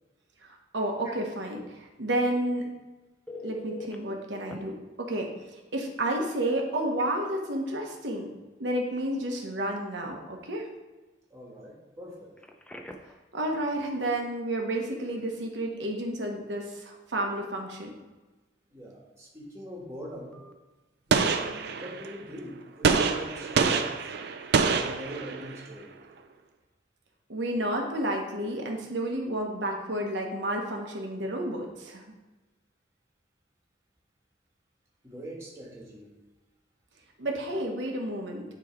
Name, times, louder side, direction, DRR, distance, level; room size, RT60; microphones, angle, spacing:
voice 1, 0.7-2.6 3.4-8.3 8.6-10.7 13.3-17.9 27.3-32.0 37.2-38.4, right 1 dB, 90° right, 1 dB, 1.1 m, -31 dB
Telephone, 3.3-4.0 4.5-4.6 6.4-6.5 6.9-7.1 12.4-13.2 20.3-20.5, left 2 dB, 5° left, 0.4 m, -42 dB
voice 2, 11.3-12.3 18.7-20.3 21.1-23.9 24.5-26.0 35.0-36.1, equal, 15° right, -4 dB, 1.4 m, -42 dB
Gunshot gunfire, 21.1-22.2 22.8-25.6, right 5 dB, 65° right, 0.5 m, -26 dB
9.1 x 3.1 x 4.4 m, 1.2 s
head